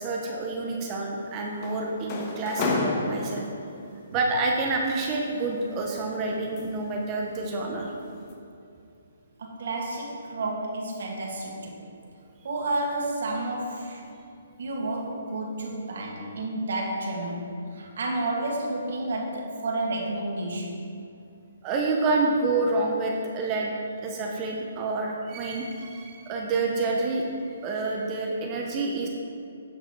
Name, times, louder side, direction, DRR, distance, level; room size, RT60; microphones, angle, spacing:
voice 1, 0.0-3.4 4.1-7.9 21.6-23.8 24.0-27.3 27.6-29.1, right 3 dB, 25° right, 0 dB, 0.9 m, -28 dB
sound 1, 1.0-3.9 5.0-7.0 7.4-7.7 8.1-8.3, left 3 dB, 30° left, 1.2 m, -32 dB
voice 2, 9.4-11.8 12.4-14.1 14.6-20.7, right 2 dB, 65° right, -1 dB, 2.0 m, -31 dB
9.1 x 6.5 x 4.7 m, 2.6 s
hypercardioid pair, 150°, 0 cm